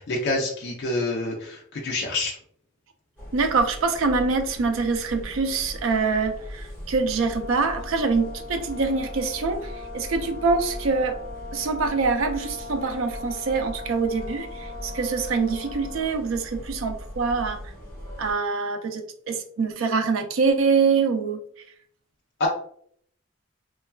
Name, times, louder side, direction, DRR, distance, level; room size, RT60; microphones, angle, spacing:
voice 1, 0.0-2.4 22.4-22.5, left 2 dB, 60° left, -2 dB, 0.5 m, -27 dB
sound 1, 3.2-18.3, equal, 10° left, 1.3 m, -39 dB
voice 2, 3.3-11.2 11.5-17.6 18.2-21.4, right 4 dB, 75° right, 6 dB, 0.4 m, -25 dB
Brass instrument, 7.3-16.2, left 3 dB, 20° right, 1.2 m, -40 dB
3.1 x 2.3 x 2.2 m, 0.63 s
head